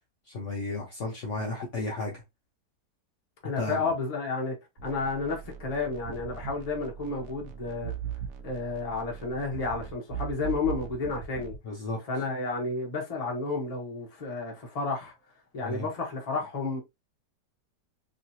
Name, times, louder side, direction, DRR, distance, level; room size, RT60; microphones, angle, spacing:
voice 1, 0.3-2.2 3.6-3.9 11.6-12.0 15.6-15.9, left 2 dB, 55° left, 0.9 m, -33 dB
voice 2, 3.4-4.5 4.8-7.9 8.4-11.5 12.1-15.1 15.5-16.8, left 3 dB, 30° left, 0.9 m, -31 dB
sound 1, 4.8-11.6, right 8 dB, 70° right, 0.7 m, -39 dB
3.1 x 2.9 x 2.6 m
omnidirectional pair, 1.8 m